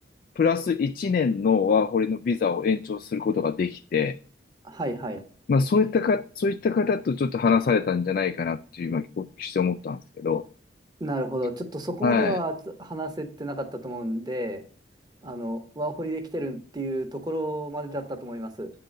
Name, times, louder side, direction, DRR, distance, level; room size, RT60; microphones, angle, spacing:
voice 1, 0.4-4.2 5.5-10.4 12.0-12.4, left 5 dB, 50° left, 0.3 m, -24 dB
voice 2, 4.6-5.2 11.0-12.5 12.8-14.6 15.2-18.7, right 1 dB, 25° right, 1.1 m, -31 dB
9.1 x 3.8 x 6.4 m
head